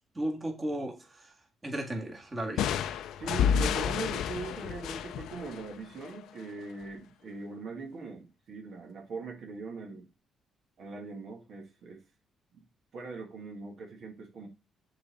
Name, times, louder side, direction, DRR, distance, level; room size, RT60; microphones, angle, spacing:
voice 1, 0.1-1.3 1.6-2.9, right 1 dB, 25° right, 1 dB, 1.9 m, -35 dB
sound 1, 2.6-6.2, left 8 dB, 80° left, 0.5 m, -30 dB
voice 2, 3.2-10.0 10.8-12.0 12.9-14.5, right 4 dB, 65° right, 2 dB, 1.6 m, -41 dB
6.6 x 4.0 x 4.1 m, 0.30 s
cardioid pair, 90°, 0 cm